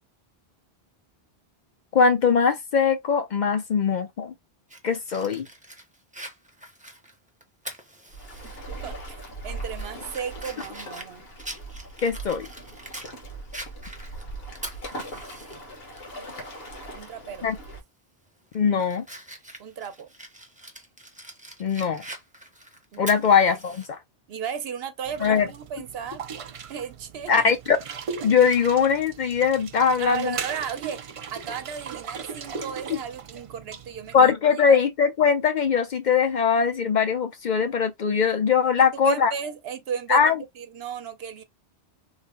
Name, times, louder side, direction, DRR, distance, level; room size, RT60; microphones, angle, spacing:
voice 1, 1.9-4.3 4.8-5.5 12.0-12.5 17.4-17.6 18.5-19.0 21.6-22.0 23.0-24.0 25.2-25.5 27.3-27.8 28.2-30.4 32.9-33.0 34.1-39.3 40.1-40.4, left 6 dB, 55° left, 0.6 m, -21 dB
Fire, 4.7-8.6 9.0-9.1 9.6-13.1 13.5-15.6 16.0-16.1 17.6-17.8 18.3-23.9, right 1 dB, 10° right, 0.6 m, -43 dB
Waves surf, 8.1-17.8, right 2 dB, 70° left, 1.4 m, -39 dB
voice 2, 8.8-11.3 16.9-17.5 19.6-20.1 22.9-23.2 24.3-26.2 26.7-27.3 30.0-31.0 31.3-34.3 34.6-34.8 39.0-41.4, right 7 dB, 75° right, 0.9 m, -35 dB
sound 1, 25.0-34.3, right 6 dB, 55° right, 0.4 m, -38 dB
3.2 x 2.1 x 3.6 m
omnidirectional pair, 1.0 m